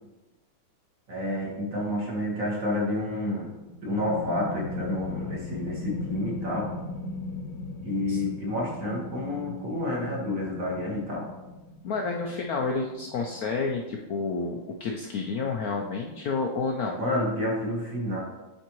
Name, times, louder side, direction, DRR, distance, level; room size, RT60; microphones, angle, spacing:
voice 1, 1.1-3.5 3.8-6.7 7.8-11.3 17.0-18.2, left 1 dB, 45° right, -3 dB, 1.7 m, -29 dB
sound 1, 3.6-15.0, left 3 dB, 70° left, 1.0 m, -38 dB
voice 2, 11.8-17.0, left 4 dB, 90° left, 1 dB, 0.8 m, -30 dB
8.3 x 4.4 x 3.0 m, 1.1 s
omnidirectional pair, 2.2 m